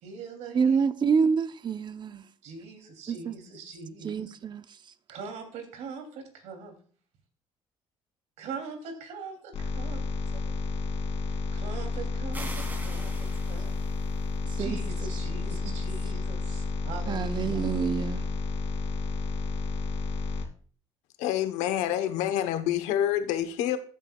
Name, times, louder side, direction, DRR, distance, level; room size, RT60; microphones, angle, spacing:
voice 1, 0.0-0.8 2.4-4.3 5.1-6.8 8.4-10.0 10.5-10.6 11.3-13.7 14.6-17.6, right 5 dB, 80° right, 2.9 m, -42 dB
voice 2, 0.5-2.3 3.1-3.3 4.0-4.6 14.6-14.8 15.6-15.7 17.1-18.3, right 6 dB, 40° right, 0.7 m, -27 dB
sound 1, 9.5-20.5, left 3 dB, 55° left, 2.7 m, -31 dB
sound 2, 12.3-14.4, right 1 dB, 15° right, 2.7 m, -43 dB
voice 3, 21.2-23.8, left 11 dB, 90° left, 1.0 m, -27 dB
14.5 x 8.4 x 2.3 m
cardioid pair, 85°, 12 cm